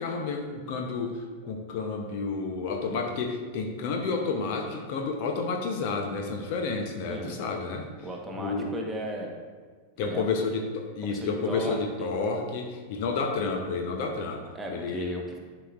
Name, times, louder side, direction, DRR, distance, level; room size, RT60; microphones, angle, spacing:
voice 1, 0.0-7.9 8.4-8.7 10.0-15.2, left 4 dB, 50° left, 3 dB, 0.7 m, -30 dB
voice 2, 8.0-9.3 10.0-10.2 11.0-12.1 14.5-15.4, right 1 dB, 10° right, 0 dB, 1.1 m, -36 dB
11.0 x 4.9 x 2.4 m, 1.5 s
figure-of-eight pair, 90°, 0 cm